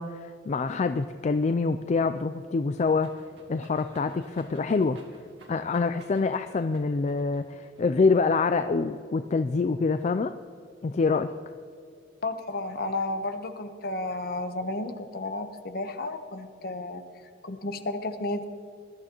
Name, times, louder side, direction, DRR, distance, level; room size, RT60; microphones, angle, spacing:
voice 1, 0.0-3.2 3.5-5.0 5.5-10.3 10.8-11.3, left 4 dB, 40° left, 10 dB, 0.3 m, -26 dB
sound 1, 2.8-7.8, right 2 dB, 70° right, 2.0 m, -54 dB
voice 2, 12.2-17.0 17.4-18.4, left 2 dB, 55° left, 8 dB, 0.9 m, -32 dB
21.0 x 12.0 x 3.0 m, 2.4 s
head